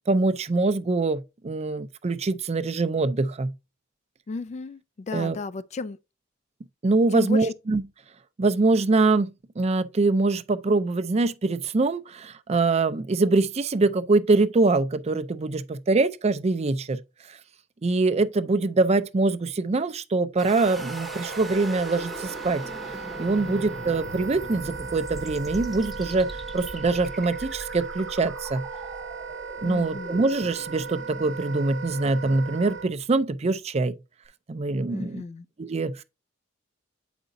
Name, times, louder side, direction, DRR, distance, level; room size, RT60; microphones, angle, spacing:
voice 1, 0.1-3.5 5.1-5.4 6.8-7.8 8.4-17.0 17.3-17.4 17.8-22.6 23.2-26.3 26.5-28.7 29.6-34.0 34.5-35.2 35.6-36.0, right 3 dB, 35° right, 0.4 m, -24 dB
voice 2, 4.3-6.0 7.1-7.5 23.4-23.9 29.6-30.2 34.9-35.4, left 3 dB, 35° left, 0.3 m, -35 dB
sound 1, 20.4-33.3, right 1 dB, ahead, 0.8 m, -41 dB
Wind instrument woodwind instrument, 20.6-32.9, right 5 dB, 70° right, 0.7 m, -37 dB
7.9 x 5.0 x 2.6 m
head